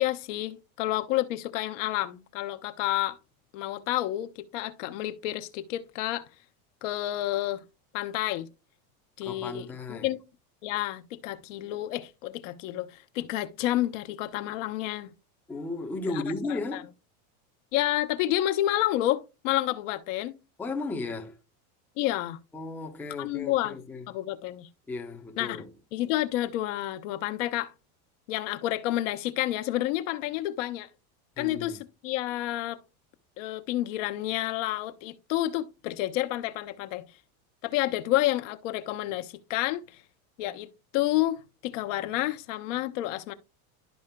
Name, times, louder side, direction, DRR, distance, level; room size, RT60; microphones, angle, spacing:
voice 1, 0.0-3.2 3.5-6.3 6.8-7.6 7.9-8.5 9.2-10.2 10.6-15.1 16.1-16.8 17.7-20.4 22.0-22.4 23.2-23.8 24.1-24.7 25.4-25.6 25.9-27.7 28.3-30.9 31.4-32.8 33.4-37.1 37.6-39.8 40.4-43.3, left 15 dB, 60° left, 0.8 m, -30 dB
voice 2, 9.2-10.1 15.5-16.9 20.6-21.4 22.5-24.1 24.9-25.7 31.4-31.8, left 3 dB, 5° left, 0.6 m, -35 dB
12.5 x 4.7 x 2.2 m
supercardioid pair, 155°, 43 cm